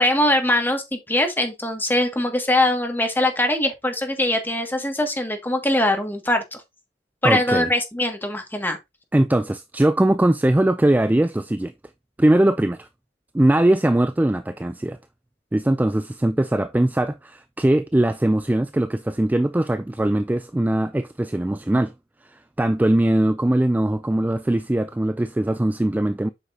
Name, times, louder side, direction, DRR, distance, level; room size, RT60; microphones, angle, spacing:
voice 1, 0.0-6.6 7.2-8.8, left 1 dB, 10° left, 1.5 m, -22 dB
voice 2, 7.2-7.7 9.1-11.7 12.2-12.9 13.3-15.0 15.5-21.9 22.6-26.3, right 1 dB, 10° right, 0.3 m, -20 dB
8.0 x 5.7 x 2.5 m
head